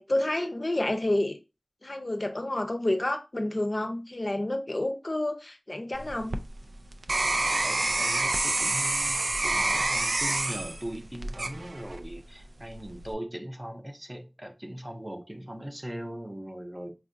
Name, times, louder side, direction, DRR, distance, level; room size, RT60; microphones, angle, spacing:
voice 1, 0.0-1.4 1.8-6.4, left 1 dB, 50° left, 0.5 m, -29 dB
sound 1, 5.9-12.1 12.7-13.1, right 2 dB, 85° right, 0.3 m, -28 dB
voice 2, 7.2-17.0, right 1 dB, 25° right, 0.6 m, -40 dB
4.4 x 2.4 x 2.5 m
wide cardioid pair, 50°, 0 cm